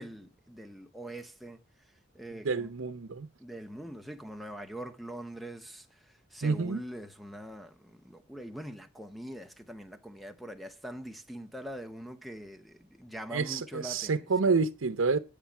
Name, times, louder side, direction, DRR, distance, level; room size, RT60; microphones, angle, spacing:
voice 1, 0.0-1.6 2.1-2.7 3.4-5.9 6.3-14.5, right 1 dB, ahead, 0.7 m, -43 dB
voice 2, 2.4-3.3 6.4-6.8 13.3-15.2, right 4 dB, 85° right, 0.7 m, -28 dB
9.1 x 5.0 x 7.1 m
head